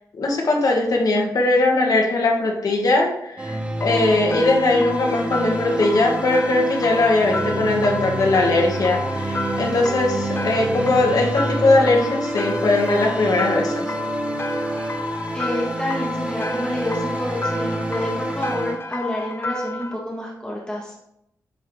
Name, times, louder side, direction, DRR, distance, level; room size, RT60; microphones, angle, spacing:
voice 1, 0.1-13.8, left 2 dB, 60° left, 1 dB, 1.4 m, -20 dB
sound 1, 3.4-18.7, right 1 dB, 15° right, 0.7 m, -28 dB
sound 2, 3.8-19.9, left 2 dB, 35° left, 0.7 m, -31 dB
voice 2, 15.3-20.9, left 1 dB, 10° left, -4 dB, 1.6 m, -28 dB
10.0 x 3.7 x 3.2 m, 0.80 s
wide cardioid pair, 105°, 7 cm